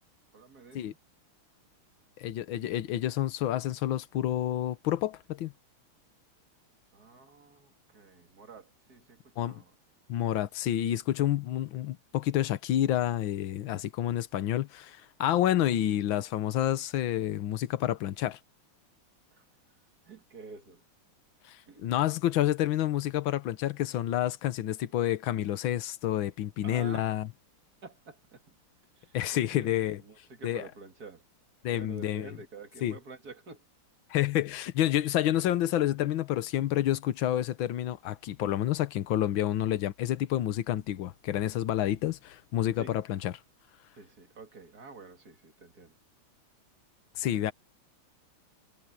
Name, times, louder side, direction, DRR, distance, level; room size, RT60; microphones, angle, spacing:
voice 1, 0.3-1.0 6.9-9.7 19.3-19.5 20.0-20.8 21.7-21.8 26.6-27.2 27.8-28.6 29.0-31.3 31.7-33.6 42.8-43.2 43.9-46.0 47.2-47.5, right 4 dB, 45° right, 2.8 m, -49 dB
voice 2, 2.2-5.5 9.4-9.6 10.1-18.4 21.4-27.3 29.1-30.0 30.4-30.6 31.6-32.3 32.8-33.0 34.1-43.3 47.1-47.5, left 12 dB, 70° left, 1.7 m, -29 dB
omnidirectional pair, 2.3 m